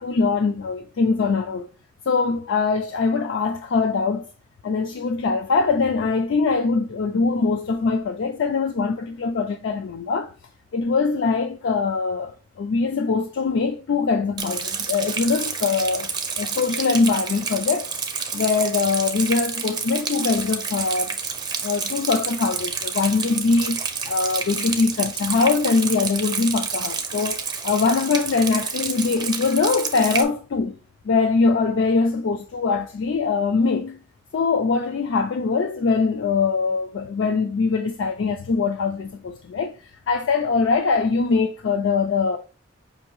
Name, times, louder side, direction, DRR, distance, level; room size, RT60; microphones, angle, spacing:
voice 1, 0.0-1.6 2.1-4.3 4.6-10.3 10.7-16.1 16.4-17.9 18.3-21.2 21.6-30.8 31.0-34.0 34.3-39.7 40.1-42.4, left 4 dB, 70° left, 0.4 m, -22 dB
Rain, 14.4-30.2, right 5 dB, 20° right, 0.5 m, -29 dB
5.5 x 2.6 x 3.0 m
head